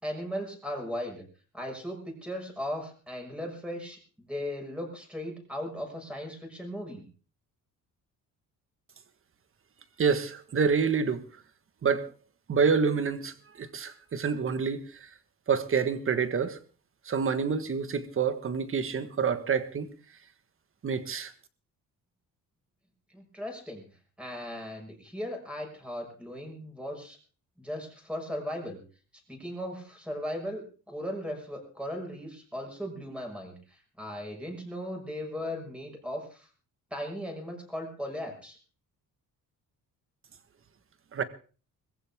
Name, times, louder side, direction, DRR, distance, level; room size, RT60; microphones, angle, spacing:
voice 1, 0.0-1.2 1.5-7.0 23.1-23.8 24.2-27.2 27.6-28.8 29.3-33.5 34.0-36.5 36.9-38.6, equal, 5° right, 6.0 m, -37 dB
voice 2, 10.0-11.2 11.8-12.1 12.5-14.8 15.5-16.6 17.1-19.9 20.8-21.3 41.1-41.2, right 5 dB, 35° right, 1.6 m, -27 dB
21.0 x 15.0 x 3.7 m
cardioid pair, 135°, 34 cm